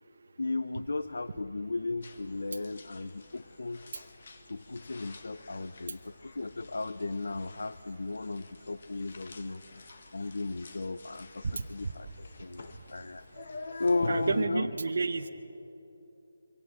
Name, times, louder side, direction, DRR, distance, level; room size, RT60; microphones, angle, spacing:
voice 1, 0.4-3.9 4.5-9.8 10.1-13.2 13.8-14.7, left 3 dB, 75° left, 13 dB, 0.6 m, -35 dB
sound 1, 2.0-14.5, left 2 dB, 45° left, 1.6 m, -47 dB
voice 2, 14.1-15.3, right 4 dB, 60° right, 6 dB, 0.9 m, -30 dB
23.5 x 17.5 x 7.5 m, 3.0 s
figure-of-eight pair, 170°, 0 cm